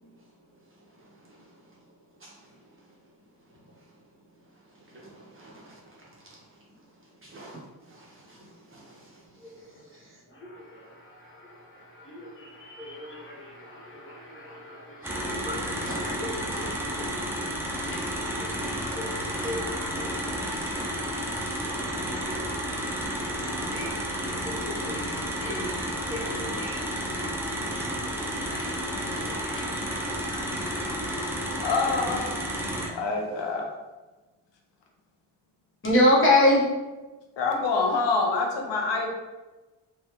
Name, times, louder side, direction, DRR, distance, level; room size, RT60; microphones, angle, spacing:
voice 1, 0.9-1.5 2.2-2.6 2.9-3.0 3.5-3.6 4.7-6.4 7.2-10.2, right 1 dB, 30° right, -4 dB, 0.8 m, -52 dB
voice 2, 10.4-31.2 35.8-36.6, left 1 dB, 30° left, -5 dB, 0.9 m, -31 dB
sound 1, 15.0-32.9, equal, 5° right, 0.4 m, -31 dB
voice 3, 31.6-32.2 32.9-33.7 37.4-39.1, left 3 dB, 90° left, 0 dB, 0.7 m, -26 dB
3.2 x 2.3 x 2.8 m, 1.2 s
wide cardioid pair, 130°, 42 cm